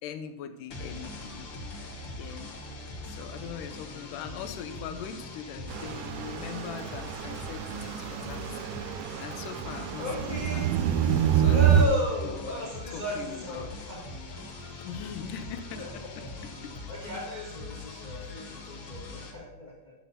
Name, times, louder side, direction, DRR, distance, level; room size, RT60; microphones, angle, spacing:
voice 1, 0.0-1.5 2.1-2.5 3.1-8.9 9.2-10.6 11.3-12.0 12.3-13.7 14.8-16.2 16.6-16.7 18.1-18.5, left 8 dB, 75° left, 9 dB, 2.1 m, -41 dB
sound 1, 0.7-19.3, left 3 dB, 50° left, 2.0 m, -42 dB
sound 2, 5.7-11.9, right 9 dB, 85° right, 2.3 m, -27 dB
voice 2, 10.0-10.7 11.5-14.0 14.3-14.4 15.3-15.4 15.7-16.1 16.9-19.9, equal, 35° left, -4 dB, 0.7 m, -35 dB
11.5 x 7.4 x 4.1 m, 0.98 s
omnidirectional pair, 4.1 m